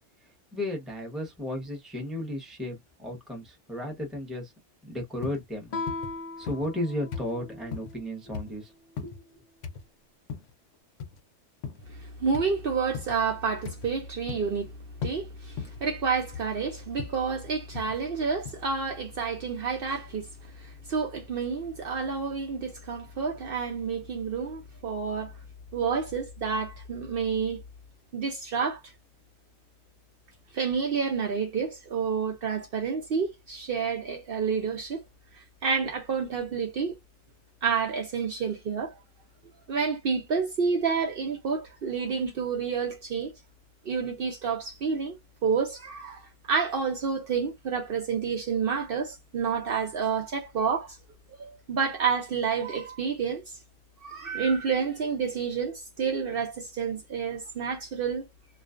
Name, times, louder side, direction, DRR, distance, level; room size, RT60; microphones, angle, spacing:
voice 1, 0.5-4.5 4.8-5.7 6.4-8.7 9.0-9.1, left 1 dB, ahead, 0.7 m, -34 dB
sound 1, 5.2-5.5 5.9-6.2 6.5-6.9 7.1-7.3 7.7-7.9 8.3-8.6 9.0-9.2 9.6-9.8 10.3-10.5 11.0-11.2 11.6-11.9 12.3-12.5 12.9-13.2 13.7-13.9 14.3-14.6 15.0-15.2 15.6-15.8 16.3-16.6 17.0-17.2 17.7-18.0 18.5-18.6, left 6 dB, 70° left, 0.8 m, -37 dB
Guitar, 5.7-8.2, left 3 dB, 50° left, 0.5 m, -38 dB
voice 2, 11.9-14.7 15.0-20.3 20.6-25.3 25.7-27.6 28.1-28.8 30.5-35.0 35.6-37.0 37.6-39.0 39.7-43.3 43.9-45.2 45.4-51.0 51.4-53.5 54.0-58.3, right 5 dB, 60° right, 0.7 m, -29 dB
2.4 x 2.3 x 2.3 m
omnidirectional pair, 1.2 m